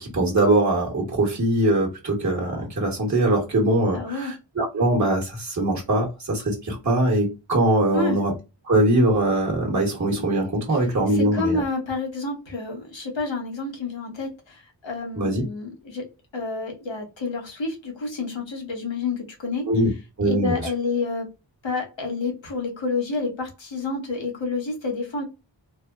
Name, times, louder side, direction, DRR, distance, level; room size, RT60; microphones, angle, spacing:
voice 1, 0.0-8.3 8.6-11.6 15.1-15.4 19.7-19.9 20.2-20.6, right 1 dB, 40° right, 1.1 m, -22 dB
voice 2, 3.9-4.3 7.9-8.2 11.1-19.7 20.2-21.3 21.6-25.2, left 3 dB, 75° left, 1.2 m, -29 dB
3.2 x 2.1 x 2.3 m
wide cardioid pair, 65°, 46 cm